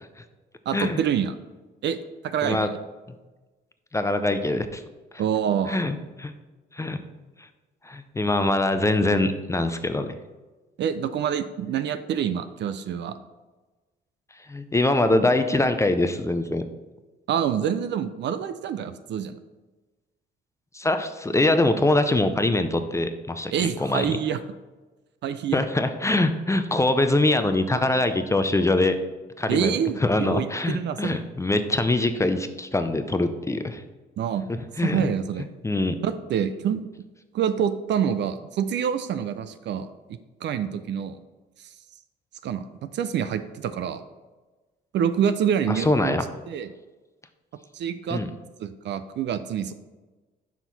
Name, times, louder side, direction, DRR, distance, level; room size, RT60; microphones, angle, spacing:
voice 1, 0.7-1.3 1.8-2.0 2.2-2.8 5.2-5.8 10.8-13.2 17.3-19.4 23.5-24.4 25.2-25.6 29.5-31.2 34.2-34.4 34.8-35.5 36.0-36.9 37.3-39.9 40.4-41.2 42.4-42.6 42.9-44.0 44.9-46.2 46.5-46.7 47.7-48.2 48.6-49.7, right 8 dB, 60° right, 11 dB, 0.4 m, -26 dB
voice 2, 3.9-4.8 5.7-6.3 6.7-7.0 7.8-10.1 14.5-16.6 20.7-23.5 23.8-24.2 25.5-29.0 29.4-33.8 34.8-35.1 35.6-36.0 45.7-46.2 48.1-48.3, left 2 dB, 15° left, 9 dB, 0.4 m, -23 dB
5.8 x 4.5 x 4.0 m, 1.2 s
cardioid pair, 90°, 20 cm